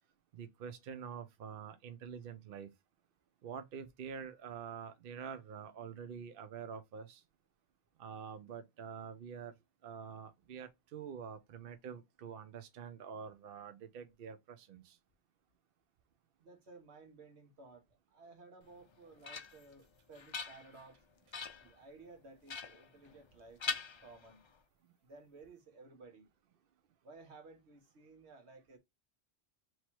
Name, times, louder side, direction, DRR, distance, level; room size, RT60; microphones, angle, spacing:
voice 1, 0.3-2.7 3.4-7.2 8.0-9.5 9.8-15.0 24.8-24.9, right 7 dB, 65° right, 0.7 m, -46 dB
voice 2, 16.4-21.0 21.6-24.4 25.0-26.3 27.0-28.8, right 3 dB, 85° right, 1.4 m, -56 dB
sound 1, 18.7-19.7 20.1-20.9 21.3-21.7 22.5-23.3 23.6-24.6, left 5 dB, 45° left, 0.4 m, -42 dB
3.1 x 3.0 x 4.3 m
omnidirectional pair, 1.1 m